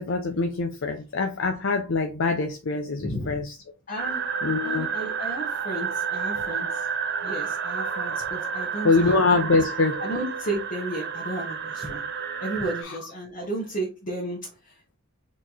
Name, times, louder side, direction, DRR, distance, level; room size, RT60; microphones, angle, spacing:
voice 1, 0.0-3.6 4.4-4.9 8.8-10.0 12.8-12.9, left 3 dB, 65° left, 5 dB, 0.6 m, -24 dB
voice 2, 3.0-3.4 3.9-4.2 4.6-6.9 7.2-9.2 10.0-12.0 12.4-14.8, right 1 dB, 40° left, -2 dB, 1.2 m, -33 dB
sound 1, 4.0-12.8, right 6 dB, 60° right, 0.7 m, -30 dB
4.3 x 3.0 x 4.0 m, 0.28 s
head